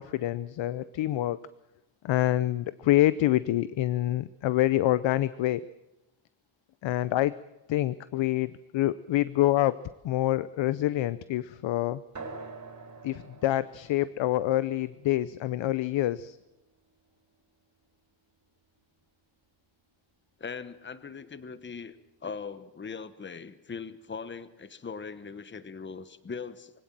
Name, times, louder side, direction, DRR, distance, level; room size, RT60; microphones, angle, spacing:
voice 1, 0.0-1.4 2.0-5.7 6.8-7.4 7.7-12.0 13.0-16.4, left 14 dB, 65° left, 16 dB, 0.7 m, -26 dB
sound 1, 12.1-17.2, right 3 dB, 35° right, 4.2 m, -47 dB
voice 2, 20.4-22.0 22.2-26.8, left 5 dB, 25° left, 13 dB, 1.1 m, -40 dB
23.5 x 17.0 x 7.5 m, 0.96 s
cardioid pair, 130°, 49 cm